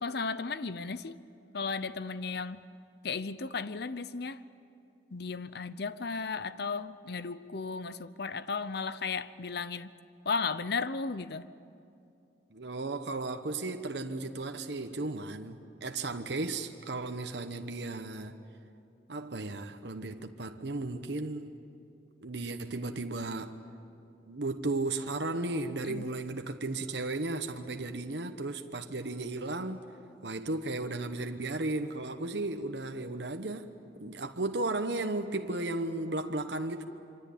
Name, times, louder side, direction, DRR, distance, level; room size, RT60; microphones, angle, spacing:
voice 1, 0.0-1.2 1.5-2.6 3.0-4.4 5.1-9.9 10.3-11.5 25.9-26.0, left 4 dB, 60° left, 0.8 m, -35 dB
voice 2, 12.5-18.3 19.1-21.5 22.2-23.5 24.3-29.9 30.2-33.7 34.0-36.8, right 2 dB, 65° right, 1.1 m, -35 dB
26.5 x 25.0 x 8.6 m
head